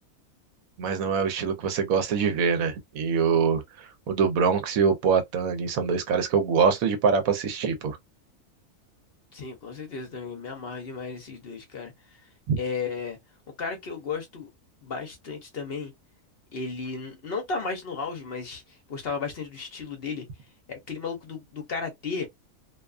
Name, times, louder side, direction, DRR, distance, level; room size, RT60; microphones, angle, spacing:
voice 1, 0.8-8.0 12.5-12.6, right 6 dB, 80° right, 1.1 m, -24 dB
voice 2, 9.3-12.2 12.6-13.2 13.6-14.5 14.8-15.9 16.5-18.6 18.9-20.2 20.7-22.3, left 4 dB, 55° left, 0.8 m, -34 dB
2.7 x 2.3 x 2.3 m
omnidirectional pair, 1.4 m